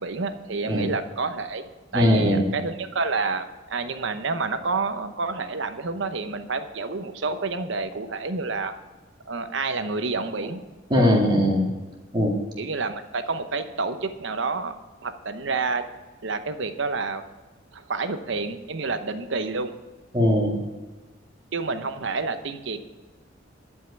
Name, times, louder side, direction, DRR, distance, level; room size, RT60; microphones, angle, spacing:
voice 1, 0.0-8.7 9.3-10.6 12.6-14.8 15.0-15.8 16.2-17.2 17.7-19.7 21.5-22.8, right 4 dB, 65° right, 9 dB, 0.9 m, -29 dB
voice 2, 1.9-2.4 10.9-11.7 12.1-12.4 20.1-20.6, equal, 25° right, -2 dB, 2.2 m, -20 dB
11.0 x 5.6 x 8.2 m, 1.2 s
head